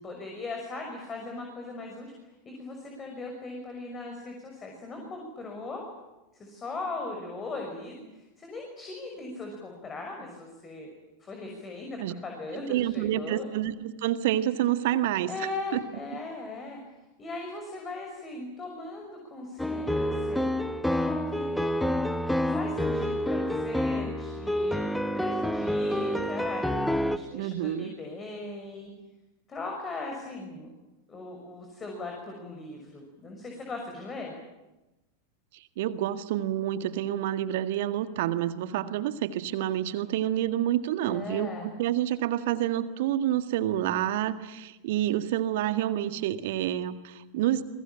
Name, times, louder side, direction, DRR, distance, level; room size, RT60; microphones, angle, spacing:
voice 1, 0.0-2.1 2.4-5.8 6.3-10.9 11.2-13.5 15.3-16.8 17.2-20.5 20.9-21.8 22.4-24.8 25.1-26.6 27.0-28.9 29.5-30.7 31.1-34.3 41.0-41.7, left 3 dB, 20° left, 2 dB, 6.1 m, -39 dB
voice 2, 12.5-15.3 15.7-15.8 27.3-27.9 35.8-47.6, right 12 dB, 50° right, 11 dB, 1.8 m, -28 dB
sound 1, 19.6-27.2, left 1 dB, 5° left, 1.3 m, -28 dB
29.0 x 22.0 x 8.8 m, 1.0 s
figure-of-eight pair, 90°, 0 cm